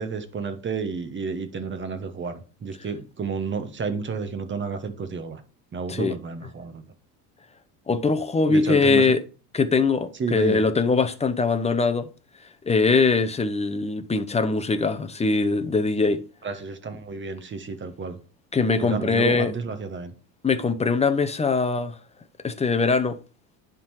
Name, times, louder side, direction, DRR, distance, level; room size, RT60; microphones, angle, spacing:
voice 1, 0.0-5.4 5.7-6.8 8.5-9.1 10.2-10.6 16.4-18.2 18.8-20.1, right 5 dB, 25° right, 1.1 m, -31 dB
voice 2, 7.9-9.2 9.5-12.1 12.6-16.2 18.5-19.5 20.4-22.0 22.4-23.2, left 4 dB, 15° left, 0.7 m, -22 dB
10.0 x 3.8 x 4.7 m
supercardioid pair, 115°, 44 cm